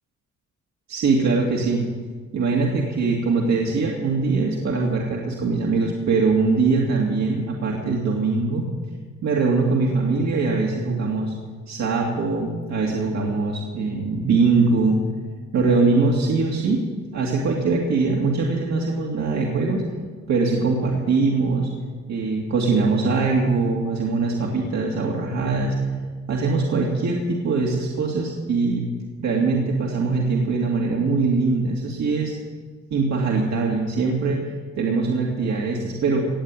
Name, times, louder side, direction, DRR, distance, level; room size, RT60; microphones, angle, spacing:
voice 1, 0.9-1.9 2.3-8.7 9.2-11.3 11.7-15.0 15.5-16.8 17.1-19.8 20.3-21.7 22.1-25.8 26.3-28.9 29.2-32.3 32.9-34.4 34.8-36.3, right 4 dB, 65° right, -2 dB, 2.4 m, -22 dB
19.0 x 7.8 x 8.9 m, 1.5 s
cardioid pair, 90°, 30 cm